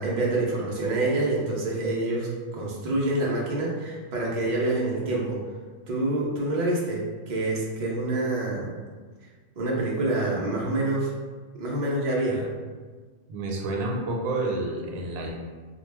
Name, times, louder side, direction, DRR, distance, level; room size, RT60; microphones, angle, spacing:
voice 1, 0.0-5.4 5.9-8.8 9.6-11.1 11.6-12.5, right 2 dB, 65° right, -4 dB, 0.4 m, -27 dB
voice 2, 13.3-15.3, right 2 dB, 85° right, -1 dB, 1.0 m, -29 dB
2.3 x 2.2 x 3.2 m, 1.5 s
omnidirectional pair, 1.4 m